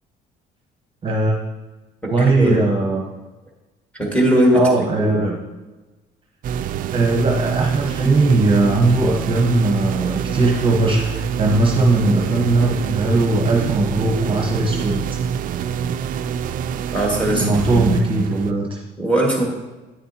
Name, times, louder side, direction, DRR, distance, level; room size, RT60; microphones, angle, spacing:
voice 1, 1.0-1.4 2.1-3.0 4.5-5.4 6.9-15.0 17.3-18.8, right 2 dB, 30° right, 0 dB, 1.0 m, -19 dB
voice 2, 2.0-2.6 3.9-5.3 16.9-17.8 19.0-19.4, equal, 5° left, -1 dB, 1.9 m, -19 dB
sound 1, 6.4-18.5, right 8 dB, 55° right, 0.4 m, -26 dB
9.3 x 6.8 x 2.9 m, 1.2 s
cardioid pair, 110°, 17 cm